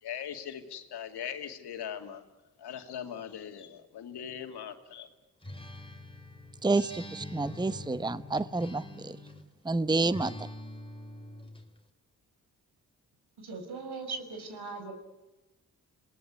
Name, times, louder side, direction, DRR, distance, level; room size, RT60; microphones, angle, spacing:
voice 1, 0.0-2.2 2.6-5.1, left 9 dB, 85° left, 5 dB, 2.5 m, -40 dB
Acoustic guitar, 5.4-9.5 10.1-11.7, left 2 dB, 15° left, 3.7 m, -44 dB
voice 2, 6.6-9.2 9.6-10.3, right 3 dB, 10° right, 15 dB, 0.9 m, -29 dB
voice 3, 13.4-14.9, right 4 dB, 75° right, 6 dB, 5.8 m, -39 dB
27.5 x 18.5 x 9.6 m, 1.1 s
supercardioid pair, 50°, 39 cm